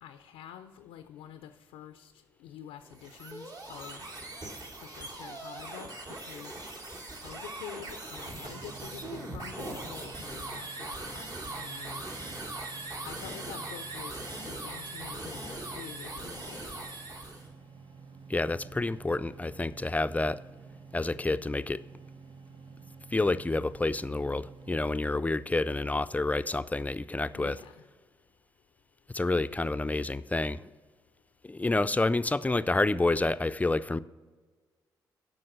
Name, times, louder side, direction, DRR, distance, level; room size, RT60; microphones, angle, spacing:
voice 1, 0.0-2.1 2.4-4.0 4.8-5.9 6.2-6.6 7.2-11.3 11.6-12.0 13.0-16.8 27.3-27.9 29.5-29.6, left 10 dB, 90° left, 9 dB, 0.4 m, -47 dB
sound 1, 2.8-17.5, right 2 dB, 45° right, 2.3 m, -40 dB
sound 2, 8.3-24.9, right 5 dB, 65° right, 1.0 m, -50 dB
voice 2, 18.3-20.4 20.9-21.8 23.1-27.6 29.1-30.6 31.4-34.0, left 2 dB, 15° left, 15 dB, 0.4 m, -28 dB
7.7 x 5.8 x 7.6 m, 1.4 s
supercardioid pair, 50°, 9 cm